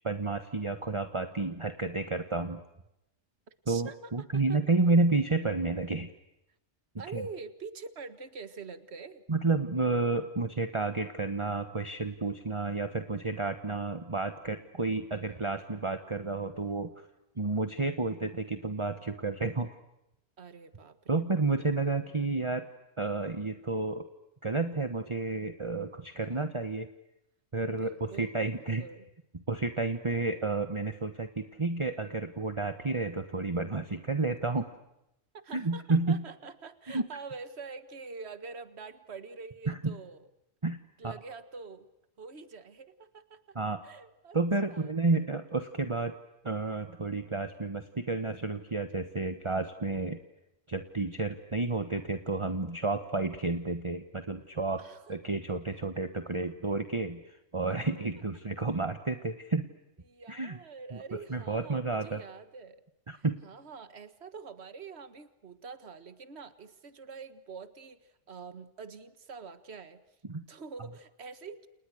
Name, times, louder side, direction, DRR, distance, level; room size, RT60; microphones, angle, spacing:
voice 1, 0.0-2.6 3.7-6.1 7.1-7.2 9.3-16.9 17.4-19.7 21.1-22.6 23.0-24.0 24.4-26.9 27.5-28.8 29.5-34.7 35.5-36.2 36.9-37.0 39.7-39.9 40.6-40.8 41.0-41.1 43.5-43.8 44.3-46.2 46.4-50.2 50.7-54.8 55.1-57.2 57.5-59.6 60.3-60.6 60.9-62.2 63.1-63.4 70.3-70.4, right 3 dB, 25° right, 9 dB, 1.3 m, -31 dB
voice 2, 3.7-4.6 7.0-9.2 20.4-21.2 21.6-22.2 26.3-26.8 27.7-29.1 35.3-40.3 41.0-41.9 42.2-43.6 43.8-44.4 44.7-44.9 54.8-55.1 60.1-62.8 63.1-70.0 70.5-71.7, right 4 dB, 65° right, 12 dB, 1.8 m, -46 dB
30.0 x 29.5 x 6.5 m, 0.90 s
omnidirectional pair, 1.2 m